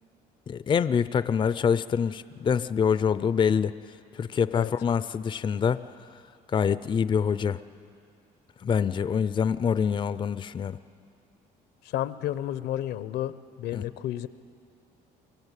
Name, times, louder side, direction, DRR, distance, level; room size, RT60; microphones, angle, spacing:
voice 1, 0.5-3.7 4.2-5.8 6.5-7.6 8.6-10.8 13.7-13.8, left 7 dB, 30° left, 15 dB, 0.4 m, -25 dB
voice 2, 11.8-13.3 13.6-14.3, left 12 dB, 80° left, 14 dB, 0.8 m, -31 dB
24.5 x 16.0 x 8.2 m, 2.5 s
cardioid pair, 110°, 17 cm